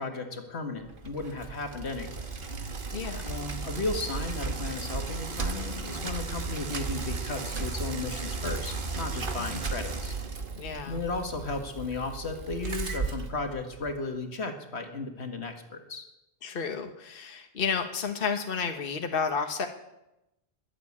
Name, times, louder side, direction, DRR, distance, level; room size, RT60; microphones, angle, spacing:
voice 1, 0.0-2.3 3.2-10.1 10.9-16.1, left 3 dB, 85° left, 5 dB, 2.0 m, -35 dB
Bicycle, 0.8-14.0, right 4 dB, 55° right, 1.5 m, -35 dB
voice 2, 2.9-3.2 9.4-9.6 10.6-11.0 16.4-19.7, left 6 dB, 60° left, 5 dB, 1.3 m, -31 dB
22.0 x 7.5 x 8.6 m, 0.91 s
omnidirectional pair, 1.1 m